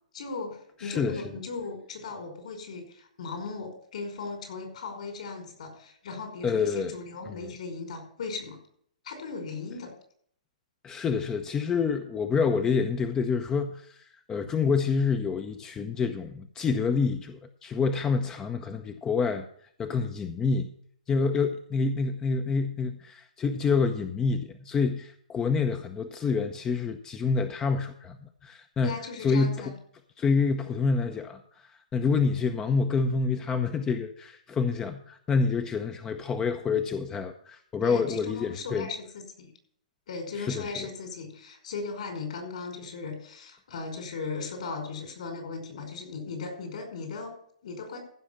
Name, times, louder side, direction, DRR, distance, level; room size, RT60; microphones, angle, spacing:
voice 1, 0.1-8.6 9.0-9.9 28.8-29.7 37.8-39.5 40.1-48.0, left 4 dB, 65° left, 5 dB, 5.1 m, -37 dB
voice 2, 0.8-1.2 6.4-6.9 7.3-7.4 10.8-19.5 19.8-20.7 21.1-28.9 29.2-29.7 30.2-38.9 40.4-40.9, left 5 dB, 15° left, 8 dB, 0.7 m, -27 dB
15.0 x 6.3 x 5.8 m, 0.63 s
hypercardioid pair, 135°, 4 cm